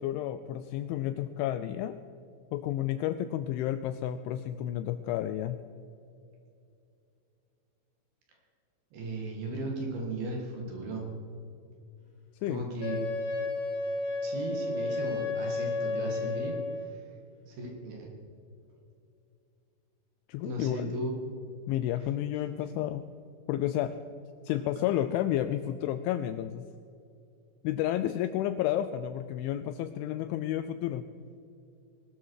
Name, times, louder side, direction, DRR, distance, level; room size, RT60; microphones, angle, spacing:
voice 1, 0.0-2.0 2.5-5.6 12.4-12.7 20.3-21.0 21.7-23.1 23.5-24.0 24.4-26.6 27.6-31.1, left 12 dB, 85° left, 11 dB, 2.7 m, -31 dB
voice 2, 8.9-11.0 12.5-13.0 14.2-17.0 17.5-18.1 20.4-21.2, right 2 dB, 55° right, 1 dB, 3.3 m, -36 dB
Wind instrument woodwind instrument, 12.8-16.9, left 3 dB, 40° left, 3.4 m, -32 dB
20.5 x 12.5 x 4.7 m, 2.6 s
omnidirectional pair, 5.9 m